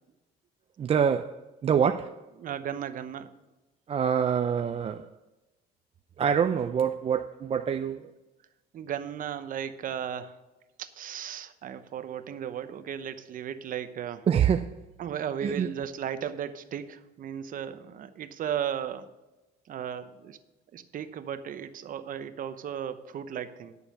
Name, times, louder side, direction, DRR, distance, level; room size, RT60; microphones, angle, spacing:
voice 1, 0.8-1.4 1.6-2.2 3.9-5.1 6.2-8.1 14.3-14.7 15.4-15.7, right 8 dB, 35° right, 0.5 m, -25 dB
voice 2, 2.4-3.3 8.7-10.4 10.8-14.3 15.0-19.1 19.7-20.4 20.7-23.8, right 9 dB, 55° right, 0.9 m, -35 dB
11.0 x 7.0 x 5.5 m
cardioid pair, 110°, 17 cm